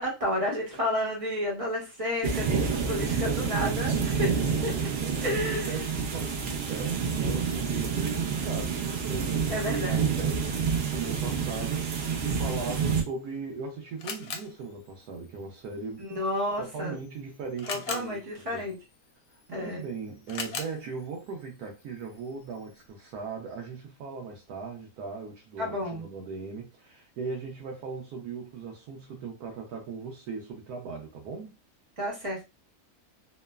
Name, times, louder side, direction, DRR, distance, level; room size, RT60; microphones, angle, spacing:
voice 1, 0.0-4.3 4.6-4.7 5.2-5.7 9.5-10.1 16.0-17.0 17.7-18.8 19.5-19.8 25.6-26.0 32.0-32.4, left 1 dB, 30° right, 0.8 m, -31 dB
sound 1, 2.2-13.0, right 6 dB, 65° right, 0.6 m, -28 dB
voice 2, 4.2-16.1 16.6-18.2 18.5-18.6 19.3-31.5, right 5 dB, 85° right, 1.1 m, -38 dB
Camera, 13.0-22.9, left 5 dB, 80° left, 1.1 m, -44 dB
3.0 x 2.0 x 2.2 m
omnidirectional pair, 1.6 m